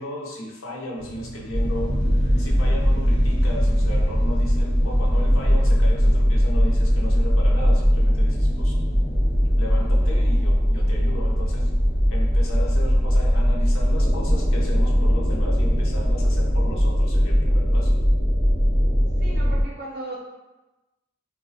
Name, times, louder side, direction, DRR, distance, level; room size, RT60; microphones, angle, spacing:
voice 1, 0.0-2.0 2.4-8.8 9.6-11.7 12.1-17.9, left 1 dB, 70° left, -2 dB, 0.7 m, -35 dB
sound 1, 1.0-14.1, right 1 dB, 50° left, 1.1 m, -42 dB
sound 2, 1.5-19.6, equal, 25° left, 1.4 m, -20 dB
voice 2, 19.2-20.2, right 2 dB, 50° right, -2 dB, 0.7 m, -36 dB
2.4 x 2.2 x 3.9 m, 1.1 s
head